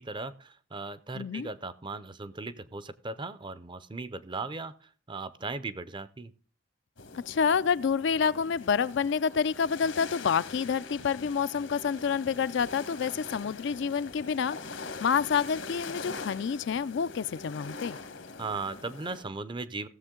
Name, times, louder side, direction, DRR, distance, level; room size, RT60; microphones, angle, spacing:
voice 1, 0.0-6.3 18.4-19.9, right 3 dB, 25° right, 0.5 m, -37 dB
voice 2, 1.1-1.5 7.3-14.6 15.0-18.0, left 6 dB, 65° left, 0.4 m, -28 dB
sound 1, 7.0-19.2, left 4 dB, 80° left, 1.4 m, -43 dB
16.0 x 7.1 x 3.7 m
head